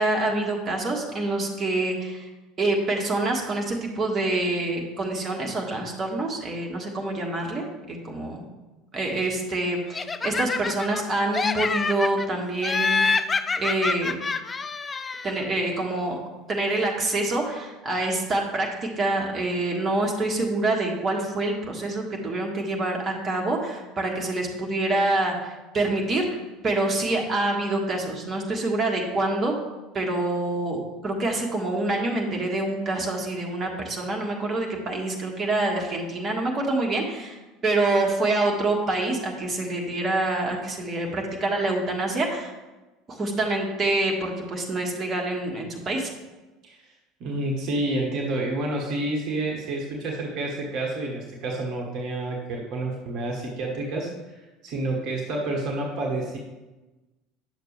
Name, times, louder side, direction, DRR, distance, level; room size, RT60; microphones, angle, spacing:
voice 1, 0.0-2.3 2.6-8.5 8.9-13.1 13.6-14.2 15.2-16.2 16.5-29.5 29.9-42.5 43.1-46.1, right 2 dB, 30° right, 0 dB, 1.5 m, -26 dB
Laughter, 9.9-11.0 11.3-12.3 12.6-15.4, left 4 dB, 20° left, 0.4 m, -26 dB
voice 2, 47.2-54.1 54.3-56.4, right 2 dB, 50° right, 0 dB, 1.3 m, -29 dB
9.4 x 6.6 x 3.3 m, 1.1 s
figure-of-eight pair, 70°, 0 cm